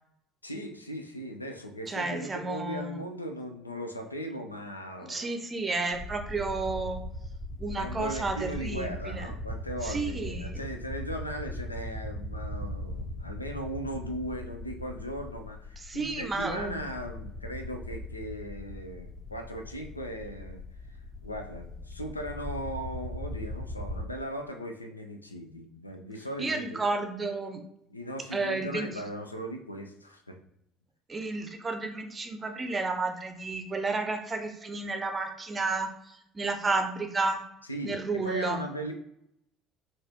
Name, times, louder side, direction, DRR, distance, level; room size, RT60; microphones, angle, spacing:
voice 1, 0.4-5.3 7.7-20.6 21.2-26.8 27.9-30.4 37.7-38.9, equal, 85° left, 5 dB, 0.4 m, -38 dB
voice 2, 1.9-3.0 5.1-7.0 7.6-9.3 9.8-10.6 15.9-16.8 26.4-27.6 28.3-29.0 31.1-37.4 37.8-38.6, right 3 dB, 25° right, 5 dB, 0.6 m, -32 dB
sound 1, 5.9-24.0, left 1 dB, 25° left, 0.7 m, -39 dB
3.9 x 2.5 x 2.9 m, 0.78 s
figure-of-eight pair, 60°, 0 cm